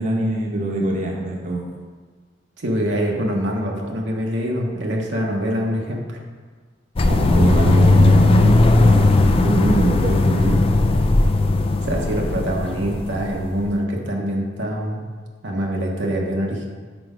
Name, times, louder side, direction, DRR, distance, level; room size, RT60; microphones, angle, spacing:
voice 1, 0.0-1.6 7.1-9.1 9.4-10.6, right 2 dB, 45° right, -1 dB, 0.9 m, -22 dB
voice 2, 2.6-6.2 11.8-15.0 15.4-16.7, equal, 75° right, 0 dB, 0.9 m, -24 dB
sound 1, 7.0-13.7, left 2 dB, 30° left, 0.4 m, -17 dB
6.1 x 4.5 x 5.0 m, 1.5 s
head